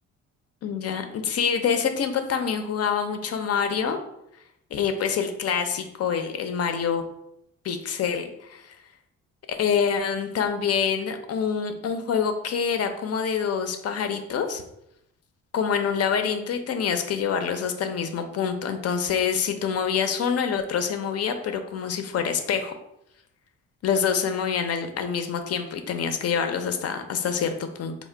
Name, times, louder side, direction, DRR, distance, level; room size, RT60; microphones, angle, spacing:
voice 1, 0.6-4.0 4.7-7.0 7.6-8.7 9.5-14.6 15.5-22.7 23.8-28.0, left 7 dB, 55° left, 7 dB, 0.5 m, -26 dB
3.7 x 2.1 x 3.2 m, 0.81 s
cardioid pair, 90°, 30 cm